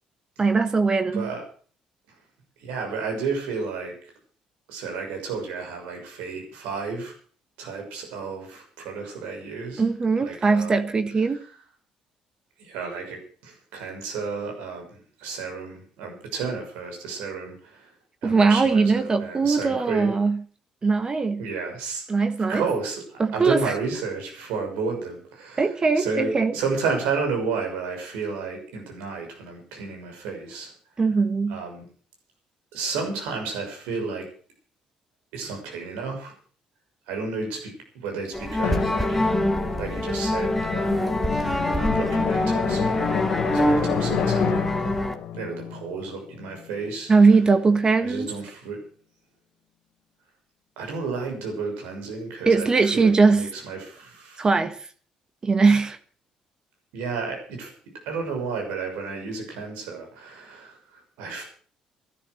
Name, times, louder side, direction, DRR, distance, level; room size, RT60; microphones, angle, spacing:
voice 1, 0.4-1.3 9.8-11.4 18.2-20.4 20.8-21.4 22.1-22.6 23.2-23.6 25.6-26.5 31.0-31.6 47.1-48.3 52.5-53.5 54.4-54.7 55.4-56.0, right 4 dB, 35° right, 10 dB, 1.5 m, -20 dB
voice 2, 1.1-1.4 2.6-3.9 4.7-7.1 7.6-9.8 10.2-10.7 11.3-11.4 12.6-17.9 18.2-20.1 21.4-22.0 22.5-25.7 25.9-30.7 31.5-31.8 32.7-34.3 35.3-36.3 37.1-39.5 39.8-43.2 43.5-44.6 44.8-45.0 45.3-47.1 48.0-48.8 50.8-54.5 56.9-57.7 58.0-61.4, right 4 dB, 85° right, 2 dB, 6.4 m, -32 dB
sound 1, 38.3-45.1, left 1 dB, 5° left, 2.3 m, -25 dB
Drum, 38.6-46.9, left 9 dB, 75° left, 2.2 m, -30 dB
13.0 x 12.5 x 6.6 m, 0.44 s
supercardioid pair, 70°, 2 cm